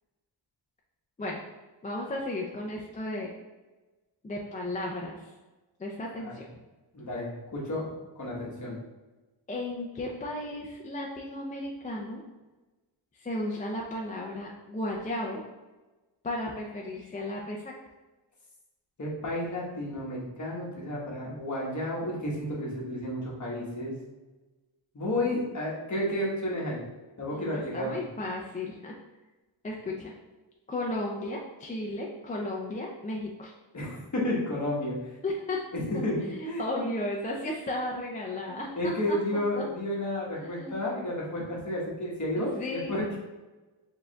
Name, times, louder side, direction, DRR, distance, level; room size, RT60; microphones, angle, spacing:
voice 1, 1.8-3.3 4.2-5.3 5.8-6.5 9.5-12.2 13.2-15.4 16.2-17.6 27.3-29.0 29.6-30.1 30.7-33.5 35.2-35.6 35.9-36.0 36.3-39.2 39.5-39.6 40.4-40.8 42.4-43.0, left 1 dB, 20° left, -2 dB, 0.3 m, -34 dB
voice 2, 6.9-8.8 19.0-23.9 24.9-26.8 27.2-28.0 33.7-35.0 35.7-36.2 36.4-36.6 38.5-43.0, left 1 dB, 40° left, -4 dB, 1.2 m, -32 dB
4.6 x 3.7 x 2.2 m, 1.2 s
wide cardioid pair, 155°, 46 cm